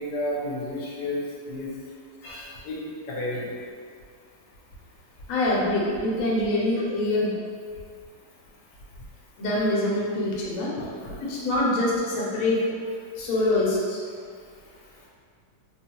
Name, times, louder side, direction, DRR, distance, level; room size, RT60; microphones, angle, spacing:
voice 1, 0.0-1.7 2.2-3.5 10.8-11.1, left 1 dB, 80° left, -5 dB, 1.3 m, -32 dB
voice 2, 5.3-7.3 9.4-10.7 11.2-12.6 13.2-14.0, left 1 dB, 60° left, -5 dB, 1.0 m, -24 dB
3.5 x 2.0 x 2.9 m, 2.1 s
omnidirectional pair, 1.8 m